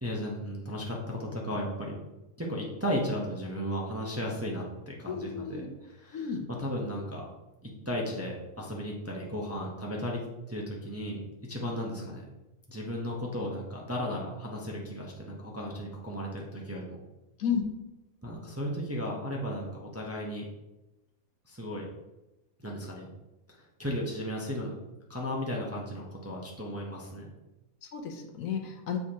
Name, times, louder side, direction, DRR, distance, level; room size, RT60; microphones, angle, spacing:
voice 1, 0.0-2.0 2.4-6.3 6.6-7.2 7.6-12.3 12.7-17.0 18.2-20.5 21.5-21.8 22.6-23.1 23.6-24.8 25.1-27.3, equal, 15° right, -3 dB, 0.6 m, -35 dB
voice 2, 5.1-5.7 6.1-6.5 17.4-17.6 27.8-29.0, left 7 dB, 75° left, 3 dB, 1.1 m, -32 dB
7.1 x 4.6 x 2.8 m, 1.0 s
omnidirectional pair, 1.5 m